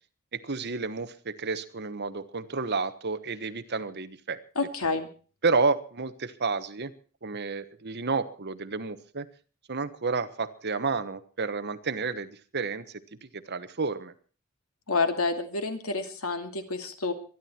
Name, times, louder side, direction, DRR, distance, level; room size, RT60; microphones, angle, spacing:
voice 1, 0.3-4.4 5.4-6.9 7.2-9.3 9.7-12.8 13.2-14.1, right 4 dB, 50° right, 11 dB, 1.2 m, -30 dB
voice 2, 4.6-5.1 14.9-17.1, left 3 dB, 85° left, 7 dB, 2.5 m, -29 dB
24.0 x 11.0 x 4.4 m, 0.39 s
head